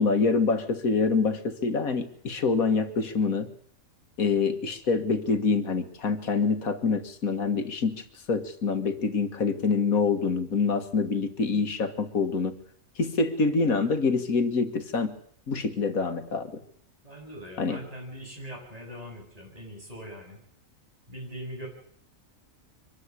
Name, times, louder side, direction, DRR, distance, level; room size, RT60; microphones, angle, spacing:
voice 1, 0.0-3.5 4.2-12.6 13.0-15.1 15.5-16.6 17.6-17.8, left 4 dB, 90° left, 9 dB, 2.1 m, -26 dB
voice 2, 17.0-20.4 21.1-21.7, equal, 25° right, 0 dB, 8.3 m, -41 dB
24.5 x 13.5 x 9.8 m, 0.65 s
omnidirectional pair, 1.4 m